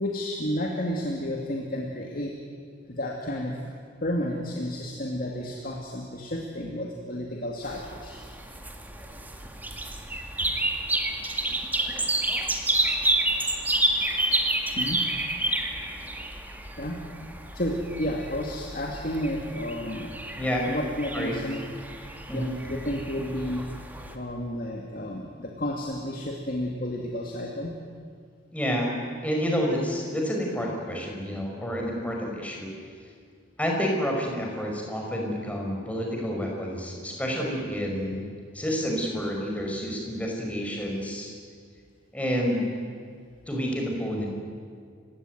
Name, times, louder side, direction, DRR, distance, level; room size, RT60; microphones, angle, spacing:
voice 1, 0.0-2.3 2.9-3.6 4.0-8.2 14.8-15.0 16.8-17.0 17.5-20.2 20.7-21.6 22.3-23.6 24.1-27.8, left 1 dB, 50° left, 0 dB, 2.5 m, -31 dB
sound 1, 7.6-24.1, right 1 dB, 10° right, 2.0 m, -30 dB
voice 2, 20.4-20.7 21.1-21.3 22.3-22.5 28.5-28.9 29.2-32.7 33.6-38.2 38.5-41.3 42.1-42.7 43.5-44.3, equal, 5° left, 0 dB, 5.2 m, -29 dB
29.5 x 17.0 x 9.4 m, 2.1 s
head